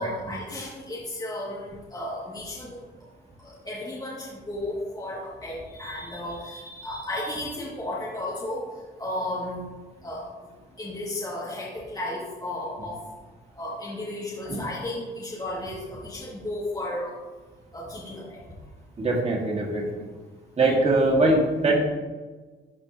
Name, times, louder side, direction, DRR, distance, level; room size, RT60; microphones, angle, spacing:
voice 1, 0.0-2.8 3.4-8.6 9.0-9.7 10.0-10.2 10.8-13.0 13.6-17.1 17.7-18.4, left 1 dB, 20° left, -8 dB, 2.0 m, -34 dB
voice 2, 19.0-19.8 20.6-21.8, right 2 dB, 30° right, -2 dB, 1.8 m, -22 dB
12.5 x 4.4 x 2.8 m, 1.3 s
cardioid pair, 90°, 20 cm